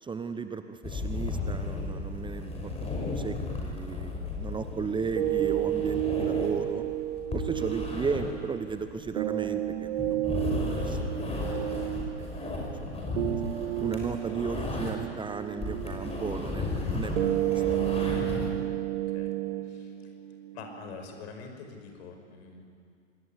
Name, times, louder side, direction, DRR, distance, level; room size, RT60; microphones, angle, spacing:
voice 1, 0.0-6.9 7.3-11.0 11.7-12.3 12.8-13.2 13.8-17.6, right 5 dB, 15° right, 9 dB, 1.0 m, -35 dB
sound 1, 0.8-15.1 15.4-18.5, left 3 dB, 15° left, 6.5 m, -34 dB
sound 2, 5.2-21.2, right 14 dB, 60° right, 1.8 m, -32 dB
voice 2, 20.5-22.6, left 5 dB, 55° left, 5 dB, 5.4 m, -45 dB
26.5 x 20.5 x 9.9 m, 2.2 s
hypercardioid pair, 100°, 38 cm